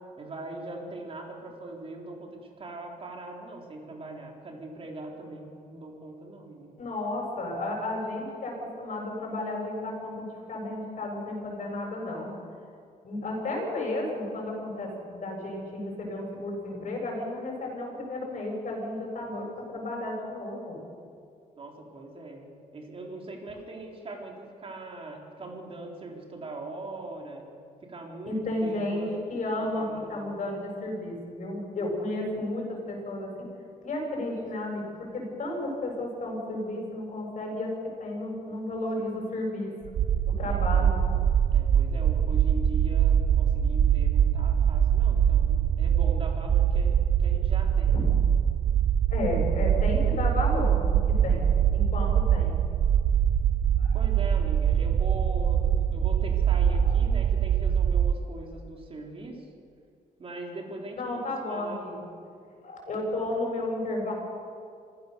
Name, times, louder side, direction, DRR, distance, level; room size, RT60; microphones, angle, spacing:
voice 1, 0.2-6.8 21.5-22.5 22.7-27.4 27.8-29.2 29.7-30.3 40.5-40.9 41.5-48.1 53.9-59.5 60.2-61.2 61.5-61.8, right 2 dB, 40° right, 0 dB, 4.0 m, -41 dB
voice 2, 6.8-12.3 13.0-20.8 28.2-29.0 29.3-33.5 33.8-39.7 40.4-40.9 47.9-48.1 49.1-52.6 53.8-54.1 56.8-57.0 61.0-62.1 62.6-64.1, left 2 dB, 55° left, -1 dB, 7.8 m, -33 dB
sound 1, 39.9-58.1, right 9 dB, 55° right, 0.6 m, -23 dB
26.0 x 15.5 x 7.0 m, 2.4 s
cardioid pair, 125°, 15 cm